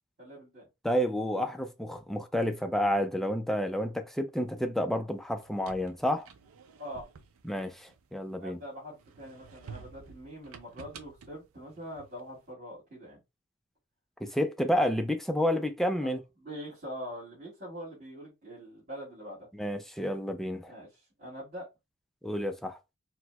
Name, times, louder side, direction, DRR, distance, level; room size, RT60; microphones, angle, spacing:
voice 1, 0.2-0.7 6.8-7.0 8.4-13.2 16.0-16.1 16.4-19.5 20.7-21.7, equal, 50° right, 2.0 m, -43 dB
voice 2, 0.8-6.3 7.4-8.6 14.2-16.2 19.5-20.7 22.2-22.8, equal, ahead, 0.3 m, -30 dB
sound 1, 5.2-8.5 9.0-12.4, right 5 dB, 85° right, 0.5 m, -51 dB
4.3 x 2.0 x 2.3 m
head